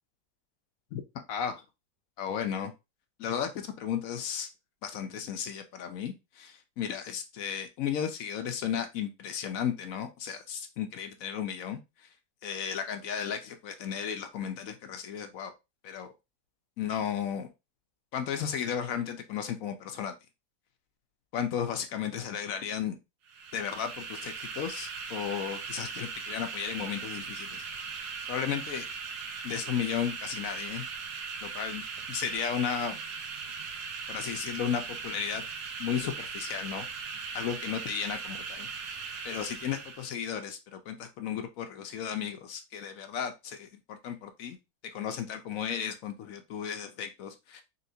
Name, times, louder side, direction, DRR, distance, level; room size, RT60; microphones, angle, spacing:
voice 1, 1.3-1.6 2.2-2.7 3.2-4.5 4.8-12.1 12.4-15.5 15.8-16.1 16.8-17.5 18.1-20.1 21.3-23.0 23.5-27.6 28.3-28.9 29.4-30.9 31.4-33.0 34.1-35.4 35.8-36.9 37.3-38.7 39.2-44.6 44.9-47.6, left 8 dB, 65° left, 7 dB, 0.9 m, -34 dB
sound 1, 23.3-40.1, right 5 dB, 75° right, 1.3 m, -39 dB
4.2 x 3.6 x 2.7 m, 0.24 s
omnidirectional pair, 1.8 m